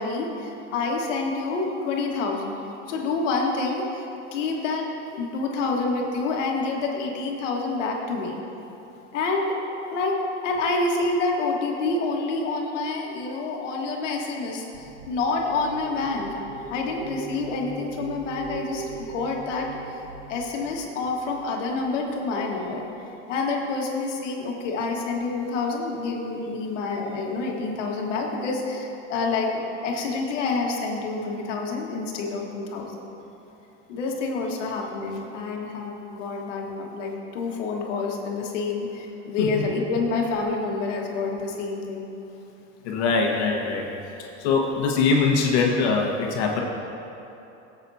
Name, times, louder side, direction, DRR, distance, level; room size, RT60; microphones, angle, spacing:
voice 1, 0.0-2.6 2.9-4.8 5.1-8.4 9.1-9.6 9.9-16.3 16.7-20.0 20.3-22.9 23.3-33.1 33.9-42.1, left 3 dB, 85° left, 0 dB, 1.6 m, -28 dB
sound 1, 14.7-22.9, right 4 dB, 90° right, 1.1 m, -41 dB
voice 2, 42.8-43.9 44.4-46.6, left 4 dB, 65° left, 0 dB, 1.4 m, -22 dB
15.5 x 8.0 x 2.8 m, 3.0 s
supercardioid pair, 150°, 36 cm